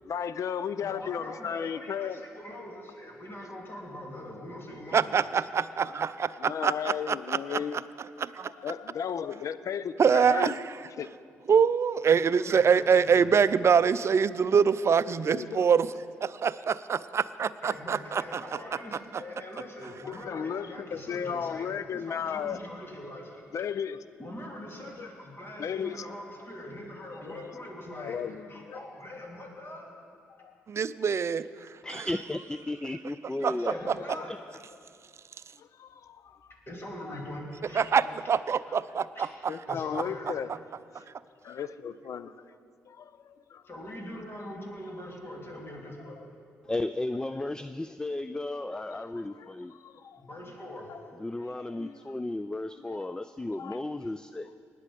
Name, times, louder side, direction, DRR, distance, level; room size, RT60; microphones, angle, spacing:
voice 1, 0.0-2.2 4.1-4.2 6.3-7.8 8.4-10.6 11.0-11.1 12.4-12.5 15.2-15.7 20.1-22.6 23.5-24.0 25.0-25.1 25.6-26.0 27.2-27.5 28.0-28.4 28.7-28.8 30.4-30.5 33.8-34.3 35.6-36.5 37.8-38.1 39.5-40.5 41.0-41.1 41.4-42.6 42.9-43.6 44.4-44.6 48.7-50.2 50.9-51.0 51.6-52.0 52.8-53.0 53.5-53.8, left 7 dB, 60° left, 15 dB, 0.5 m, -35 dB
voice 2, 0.8-5.3 12.6-13.3 17.6-23.4 24.2-25.1 25.4-28.2 28.5-29.9 33.5-34.3 36.7-37.9 39.1-39.3 39.7-40.4 43.6-46.2 50.2-50.9, left 1 dB, 40° left, -1 dB, 3.4 m, -42 dB
voice 3, 4.9-6.7 7.1-7.6 8.2-8.5 10.0-10.5 11.5-15.9 16.2-18.4 30.7-31.5 33.4-33.7 37.8-39.1, right 6 dB, 50° right, 16 dB, 0.5 m, -24 dB
voice 4, 31.8-34.4 46.6-49.7 51.2-54.5, left 2 dB, 10° left, 13 dB, 0.4 m, -34 dB
19.5 x 7.6 x 5.3 m, 2.3 s
hypercardioid pair, 45°, 6 cm